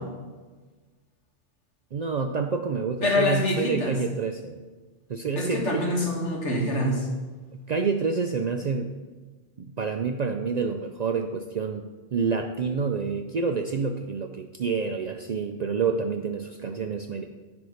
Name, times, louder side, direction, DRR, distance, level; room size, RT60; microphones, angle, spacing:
voice 1, 1.9-4.6 5.1-5.9 7.5-8.9 9.6-17.2, right 5 dB, 60° right, 5 dB, 0.4 m, -28 dB
voice 2, 3.0-3.9 5.4-7.1, left 1 dB, 85° left, -2 dB, 2.0 m, -25 dB
10.5 x 3.6 x 6.4 m, 1.3 s
omnidirectional pair, 1.2 m